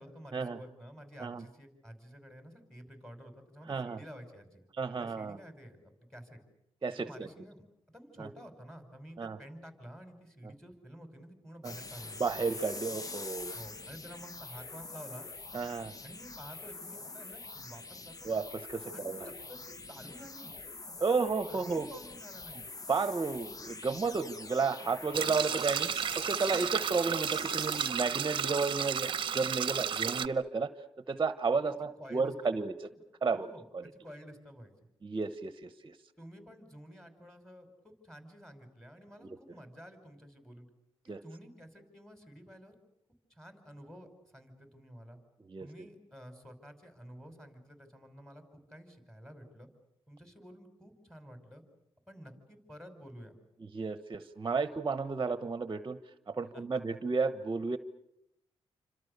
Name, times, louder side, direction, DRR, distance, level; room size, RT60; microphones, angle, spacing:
voice 1, 0.0-4.6 5.0-6.4 7.0-12.2 13.5-15.3 16.0-18.3 18.9-20.5 21.0-21.2 21.5-22.6 25.1-25.5 31.7-32.6 33.3-33.7 33.9-34.7 36.2-40.7 41.0-42.8 43.3-45.2 45.6-49.7 50.1-51.6 52.1-53.4 56.5-56.8, equal, 5° left, 6 dB, 5.5 m, -51 dB
voice 2, 3.7-4.0 4.8-5.4 6.8-7.3 8.2-8.3 9.2-9.4 11.6-11.7 12.2-13.5 15.5-15.9 18.2-19.2 21.0-21.9 22.9-25.9 26.3-30.7 31.1-32.7 33.2-33.5 33.7-33.8 35.0-36.0 39.2-39.4 41.1-41.2 45.4-45.7 53.6-56.0 56.3-57.8, right 4 dB, 30° right, 12 dB, 1.1 m, -32 dB
sound 1, 11.6-27.9, left 3 dB, 35° left, 1.2 m, -45 dB
gurgling water in the mountains, 25.1-30.3, right 7 dB, 50° right, 0.9 m, -33 dB
28.0 x 26.0 x 6.8 m, 0.81 s
cardioid pair, 105°, 11 cm